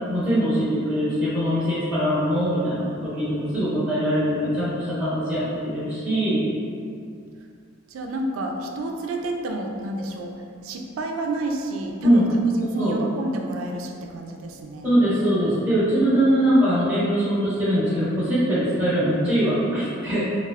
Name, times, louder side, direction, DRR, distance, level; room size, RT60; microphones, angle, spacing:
voice 1, 0.1-6.5 12.0-12.9 14.8-20.2, equal, 10° right, -16 dB, 1.1 m, -22 dB
voice 2, 7.9-10.3 10.6-12.3 12.7-14.9, right 2 dB, 80° right, 2 dB, 0.3 m, -30 dB
3.4 x 2.3 x 2.2 m, 2.4 s
head